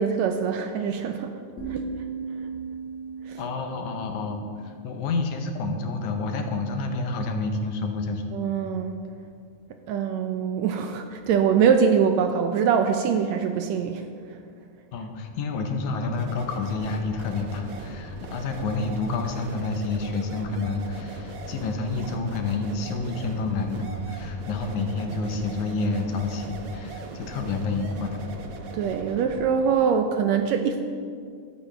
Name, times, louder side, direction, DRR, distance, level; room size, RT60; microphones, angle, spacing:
voice 1, 0.0-1.3 1.7-1.9 3.2-3.4 8.3-9.0 9.9-14.4 28.7-30.8, right 7 dB, 80° right, 6 dB, 1.6 m, -23 dB
sound 1, 1.6-5.4, right 5 dB, 25° left, 1.7 m, -37 dB
voice 2, 3.4-8.2 14.9-28.2, left 3 dB, 75° left, 4 dB, 2.3 m, -29 dB
sound 2, 16.1-29.5, right 3 dB, 60° right, 1.6 m, -39 dB
14.0 x 13.0 x 3.4 m, 2.2 s
omnidirectional pair, 3.6 m